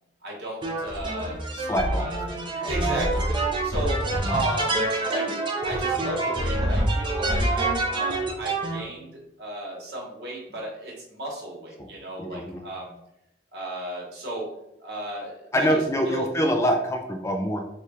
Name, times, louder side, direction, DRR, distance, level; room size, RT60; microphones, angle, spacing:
voice 1, 0.2-1.4 1.9-2.2 2.5-3.3 3.6-9.1 9.4-13.0 13.5-14.5 14.8-15.8 16.0-16.3, right 1 dB, 65° right, -3 dB, 1.3 m, -35 dB
sound 1, 0.6-8.8, right 2 dB, 30° right, 0.6 m, -26 dB
voice 2, 1.5-2.1 11.8-11.9 12.2-12.6 15.5-17.6, equal, 15° left, 4 dB, 0.3 m, -25 dB
3.3 x 2.4 x 4.1 m, 0.83 s
head